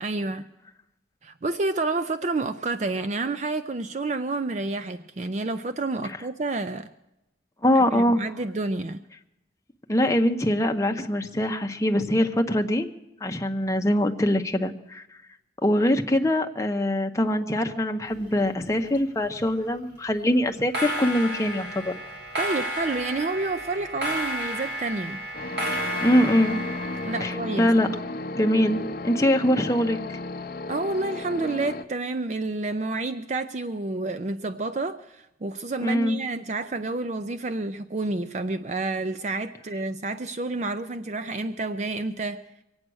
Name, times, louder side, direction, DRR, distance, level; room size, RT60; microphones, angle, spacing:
voice 1, 0.0-0.4 1.2-6.9 7.7-9.0 22.4-25.2 27.0-27.7 30.7-42.4, right 3 dB, 40° right, 10 dB, 0.4 m, -29 dB
voice 2, 7.6-8.2 9.9-12.9 13.2-15.0 15.6-21.9 26.0-26.6 27.2-27.9 28.3-30.2 35.8-36.2, left 1 dB, 15° left, 4 dB, 0.8 m, -23 dB
sound 1, 18.1-19.0 19.2-19.7 20.5-27.3, equal, 65° right, 3.2 m, -32 dB
sound 2, 25.3-31.8, left 2 dB, 50° left, 0.6 m, -34 dB
23.5 x 8.8 x 6.2 m, 0.91 s
head